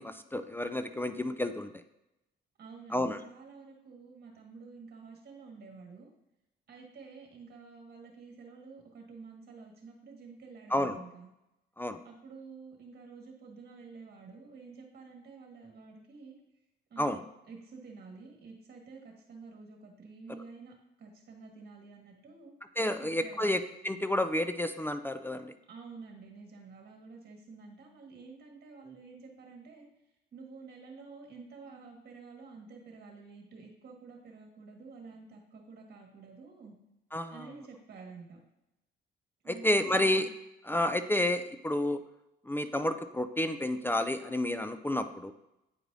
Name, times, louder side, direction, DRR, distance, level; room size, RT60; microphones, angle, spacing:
voice 1, 0.0-1.8 2.9-3.2 10.7-11.0 11.8-12.0 17.0-17.2 22.8-25.5 37.1-37.4 39.5-40.3 40.7-42.0 42.5-45.3, left 1 dB, 10° left, 9 dB, 0.3 m, -30 dB
voice 2, 2.6-6.1 6.7-11.3 12.0-16.4 16.9-17.2 17.5-22.5 23.0-23.6 25.7-29.8 30.3-36.8 37.3-38.4 39.4-40.3, right 4 dB, 55° right, 1 dB, 1.7 m, -50 dB
8.8 x 4.6 x 2.6 m, 0.91 s
cardioid pair, 90°, 20 cm